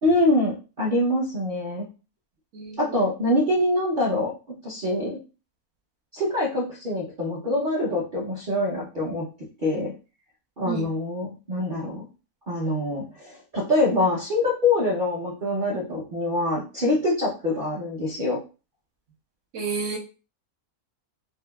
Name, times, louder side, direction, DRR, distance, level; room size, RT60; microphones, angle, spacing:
voice 1, 0.0-1.9 2.8-4.3 4.6-5.2 6.1-9.3 9.6-9.9 10.6-12.0 12.5-18.4, left 1 dB, 45° right, -7 dB, 0.7 m, -24 dB
voice 2, 19.5-20.0, right 5 dB, 65° right, 1 dB, 1.2 m, -30 dB
4.5 x 2.0 x 2.2 m, 0.32 s
omnidirectional pair, 1.6 m